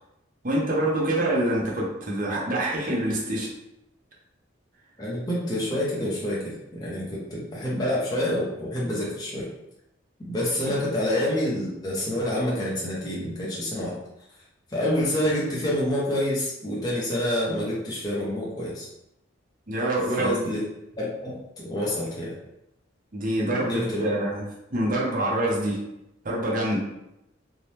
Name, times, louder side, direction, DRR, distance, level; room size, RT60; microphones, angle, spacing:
voice 1, 0.4-3.5 19.7-20.4 23.1-24.4 24.7-25.8 26.2-26.8, right 1 dB, 40° right, -4 dB, 0.6 m, -25 dB
voice 2, 5.0-9.5 10.3-13.9 14.7-18.9 20.2-20.6 21.0-22.3 23.6-24.1, left 1 dB, 20° left, -6 dB, 0.5 m, -27 dB
2.7 x 2.0 x 3.1 m, 0.86 s
head